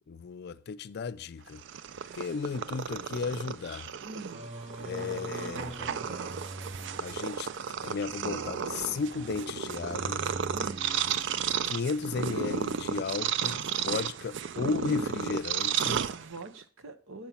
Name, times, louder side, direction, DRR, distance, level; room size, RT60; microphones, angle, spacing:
voice 1, 0.1-1.6 2.1-3.9 4.8-6.0 6.9-7.5 7.8-10.2 11.6-16.0, left 5 dB, 50° left, 0.4 m, -34 dB
Purr, 1.5-16.6, right 7 dB, 60° right, 0.4 m, -33 dB
voice 2, 4.0-4.4 10.5-10.9 16.1-17.3, right 2 dB, 80° right, 1.0 m, -44 dB
Singing, 4.3-11.7, right 2 dB, 30° right, 0.7 m, -43 dB
8.9 x 5.6 x 5.8 m
head